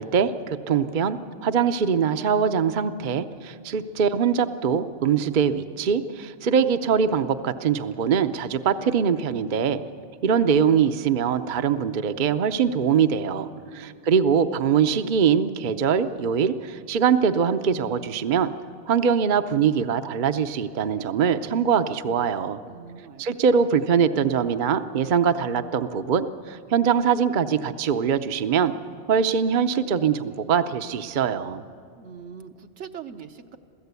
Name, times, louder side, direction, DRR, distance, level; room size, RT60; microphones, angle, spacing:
voice 1, 0.0-9.8 10.2-18.5 18.9-22.6 23.2-28.7 29.1-31.6, right 7 dB, 50° right, 9 dB, 0.8 m, -23 dB
voice 2, 13.5-13.9 22.6-23.3 32.0-33.6, right 7 dB, 75° right, 7 dB, 1.3 m, -42 dB
27.5 x 16.5 x 8.2 m, 2.3 s
omnidirectional pair, 1.2 m